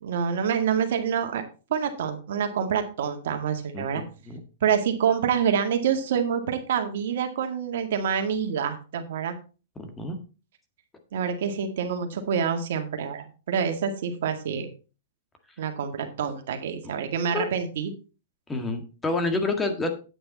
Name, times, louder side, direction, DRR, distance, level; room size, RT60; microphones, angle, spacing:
voice 1, 0.0-1.4 1.7-4.0 4.6-9.4 11.1-14.7 15.6-17.9, right 7 dB, 65° right, 5 dB, 2.0 m, -27 dB
voice 2, 3.7-4.4 9.8-10.2 17.3-17.4 18.5-19.9, left 2 dB, 10° left, 6 dB, 1.8 m, -28 dB
8.9 x 8.5 x 4.1 m, 0.33 s
hypercardioid pair, 130°, 0 cm